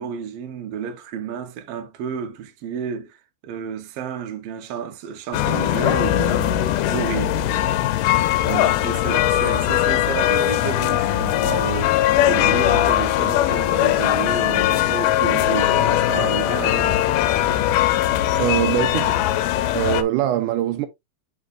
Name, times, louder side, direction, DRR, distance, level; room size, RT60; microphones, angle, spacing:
voice 1, 0.0-3.2 3.4-7.3 8.8-17.4, right 7 dB, 65° right, 1.7 m, -31 dB
sound 1, 5.3-20.0, left 13 dB, 90° left, 2.3 m, -20 dB
voice 2, 8.5-8.8 18.4-19.2 19.7-20.9, right 11 dB, 85° right, 2.1 m, -23 dB
8.0 x 5.3 x 2.5 m
omnidirectional pair, 3.7 m